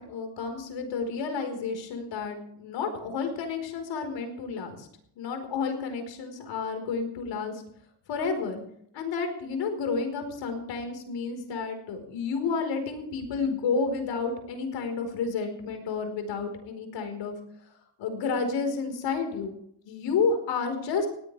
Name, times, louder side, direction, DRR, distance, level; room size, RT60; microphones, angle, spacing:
voice 1, 0.0-4.9 5.1-7.6 8.1-8.6 8.9-17.3 18.0-19.5 19.8-21.1, left 4 dB, 60° left, 5 dB, 4.8 m, -30 dB
19.5 x 17.0 x 3.5 m, 0.70 s
cardioid pair, 150°, 48 cm